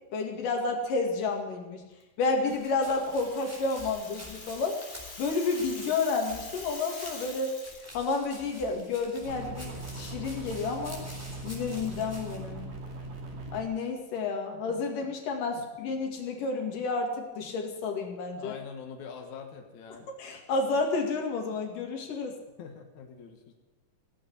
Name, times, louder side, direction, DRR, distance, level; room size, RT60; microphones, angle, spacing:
voice 1, 0.1-1.9 2.2-4.8 5.2-7.6 7.9-11.0 11.4-12.7 13.5-18.5 20.2-22.4, left 3 dB, 85° left, 2 dB, 3.8 m, -30 dB
sound 1, 2.5-12.4, left 1 dB, 5° right, 3.9 m, -48 dB
Rattle (instrument), 2.7-7.9, left 3 dB, 30° left, 1.0 m, -45 dB
sound 2, 9.2-13.6, right 2 dB, 80° right, 4.0 m, -40 dB
voice 2, 18.4-20.1 22.6-23.5, left 6 dB, 65° left, 2 dB, 2.8 m, -44 dB
17.0 x 8.6 x 9.9 m, 1.1 s
omnidirectional pair, 3.7 m